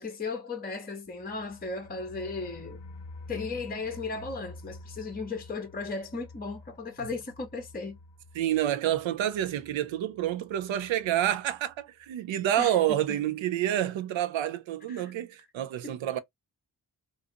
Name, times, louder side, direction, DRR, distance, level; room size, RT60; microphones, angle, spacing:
voice 1, 0.0-2.8 3.3-8.0 12.6-13.0 14.9-15.1 15.8-16.0, left 3 dB, 20° left, 0.7 m, -36 dB
sound 1, 1.1-11.8 12.1-12.2 12.5-12.6, left 2 dB, 70° left, 0.6 m, -49 dB
voice 2, 8.3-16.2, right 12 dB, 80° right, 0.5 m, -28 dB
2.5 x 2.4 x 2.5 m
supercardioid pair, 40°, 45 cm